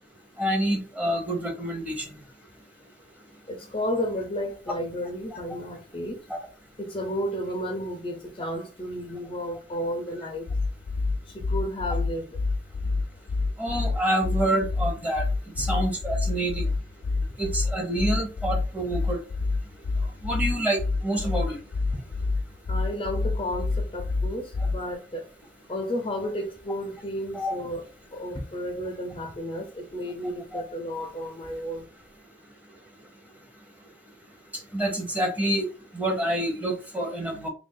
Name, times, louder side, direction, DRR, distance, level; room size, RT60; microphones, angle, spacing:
voice 1, 0.4-1.9 13.6-15.2 15.6-16.6 17.4-19.2 20.2-20.8 21.0-21.6 27.3-27.6 30.5-30.6 34.7-35.7 35.9-37.5, right 1 dB, 10° right, 0.9 m, -27 dB
voice 2, 3.5-6.2 6.8-10.5 11.3-12.3 21.9-22.0 22.7-25.2 25.7-27.8 28.1-31.8, equal, 30° left, 0.6 m, -32 dB
sound 1, 10.5-24.9, left 3 dB, 75° left, 0.4 m, -27 dB
3.3 x 2.5 x 3.8 m
head